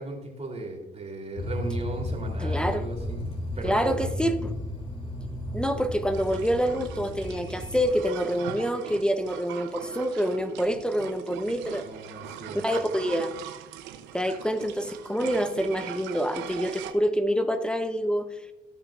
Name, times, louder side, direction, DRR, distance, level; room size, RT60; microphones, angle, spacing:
voice 1, 0.0-4.1 11.8-12.7, right 2 dB, 35° right, 1 dB, 3.0 m, -37 dB
sound 1, 1.4-8.0, left 1 dB, 30° left, 2.9 m, -34 dB
voice 2, 2.4-2.9 3.6-4.4 5.5-11.8 12.5-13.3 14.1-18.3, equal, 5° left, 7 dB, 0.9 m, -26 dB
sound 2, 6.1-16.9, right 10 dB, 80° right, 0.8 m, -41 dB
17.5 x 5.9 x 2.5 m, 1.0 s
hypercardioid pair, 50°, 19 cm